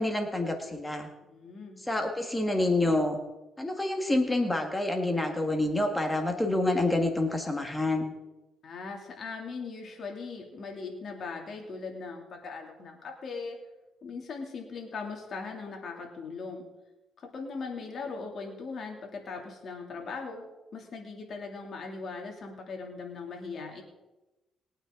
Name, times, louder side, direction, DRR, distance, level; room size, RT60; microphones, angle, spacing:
voice 1, 0.0-1.1 1.9-3.2 3.6-8.1, left 2 dB, 10° left, 4 dB, 1.8 m, -27 dB
voice 2, 1.3-1.8 8.6-13.6 14.0-16.7 17.2-20.4 20.7-23.8, left 4 dB, 55° left, 1 dB, 2.9 m, -39 dB
21.5 x 8.8 x 3.9 m, 1.0 s
cardioid pair, 90°, 0 cm